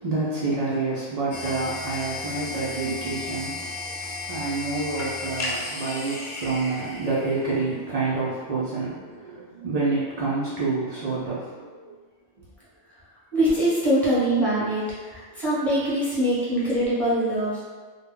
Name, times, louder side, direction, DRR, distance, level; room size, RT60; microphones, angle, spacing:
voice 1, 0.0-11.9, right 3 dB, 80° right, -8 dB, 0.3 m, -28 dB
sound 1, 1.3-7.9, left 2 dB, 70° left, 0.4 m, -34 dB
voice 2, 13.3-17.7, right 1 dB, ahead, -10 dB, 0.7 m, -23 dB
2.2 x 2.1 x 3.5 m, 1.4 s
omnidirectional pair, 1.3 m